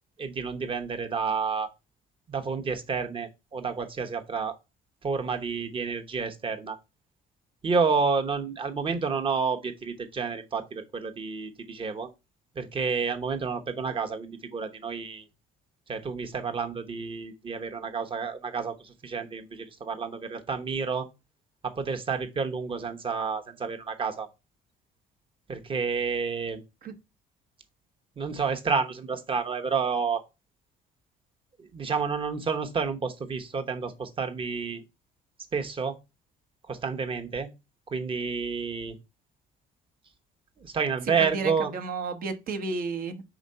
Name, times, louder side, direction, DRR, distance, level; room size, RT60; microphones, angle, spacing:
voice 1, 0.2-1.7 2.3-4.6 5.0-6.8 7.6-12.1 12.6-15.2 15.9-21.1 21.6-24.3 25.5-26.6 28.2-30.2 31.6-34.8 35.5-36.0 36.7-37.5 37.9-39.0 40.6-41.7, right 5 dB, 30° right, 1.0 m, -30 dB
voice 2, 41.3-43.2, right 4 dB, 60° right, 1.0 m, -32 dB
5.0 x 3.7 x 5.3 m
cardioid pair, 110°, 17 cm